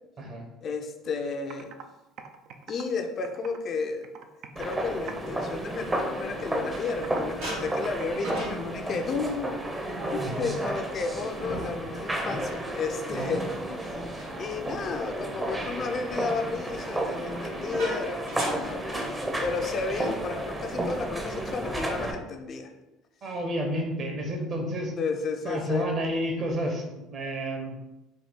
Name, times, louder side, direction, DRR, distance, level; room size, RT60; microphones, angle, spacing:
voice 1, 0.6-1.7 2.7-4.1 4.6-9.6 10.1-13.5 13.8-14.0 14.3-22.7 25.0-25.9, left 4 dB, 45° left, 5 dB, 0.5 m, -32 dB
Computer keyboard, 1.1-1.2 1.5-1.8 2.2-3.7 4.0-4.8 5.1-5.5 5.8-8.1, right 6 dB, 65° right, 0.4 m, -44 dB
sound 1, 4.6-22.1, right 1 dB, 15° right, 0.7 m, -32 dB
sound 2, 6.3-7.0 7.4-15.2 15.6-15.9 17.1-19.7 20.0-20.2 20.5-20.8 21.3-21.9, equal, 85° right, 1.5 m, -41 dB
voice 2, 10.2-10.5 13.1-13.4 23.2-24.9 25.4-27.8, equal, 45° right, 2 dB, 1.0 m, -31 dB
4.2 x 2.3 x 3.5 m, 0.97 s
supercardioid pair, 85°, 0 cm